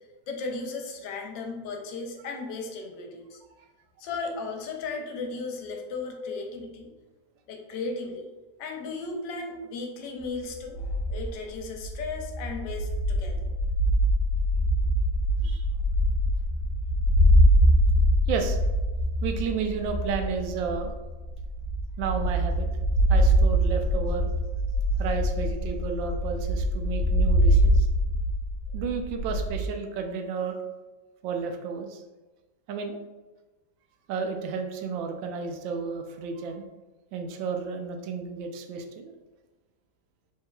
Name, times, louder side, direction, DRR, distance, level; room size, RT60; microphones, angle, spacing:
voice 1, 0.3-3.4 4.0-6.9 7.5-8.3 8.6-13.5, left 3 dB, 80° left, 3 dB, 1.3 m, -35 dB
sound 1, 10.5-29.7, equal, 75° right, 1.4 m, -24 dB
voice 2, 18.3-18.6 19.2-20.9 22.0-22.7 23.1-24.3 25.0-27.9 28.7-30.6 31.2-32.0 32.7-33.0 34.1-36.6 37.1-39.1, right 5 dB, 90° right, 5 dB, 1.3 m, -32 dB
4.7 x 3.5 x 2.2 m, 1.2 s
omnidirectional pair, 2.0 m